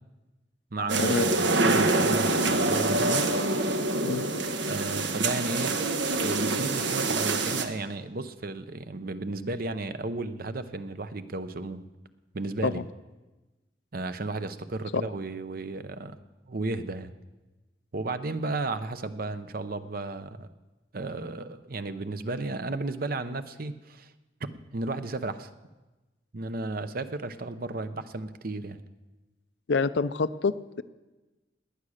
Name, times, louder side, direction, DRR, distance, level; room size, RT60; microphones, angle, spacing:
voice 1, 0.7-3.2 4.7-5.8 6.1-11.8 12.3-12.8 13.9-16.1 16.5-17.1 17.9-20.5 20.9-24.1 24.5-25.5 26.3-28.8, right 2 dB, 55° right, 11 dB, 0.8 m, -34 dB
sound 1, 0.9-7.7, right 2 dB, 85° right, 1.2 m, -26 dB
voice 2, 29.7-30.8, left 4 dB, 75° left, 14 dB, 0.6 m, -27 dB
18.0 x 9.9 x 6.5 m, 1.1 s
head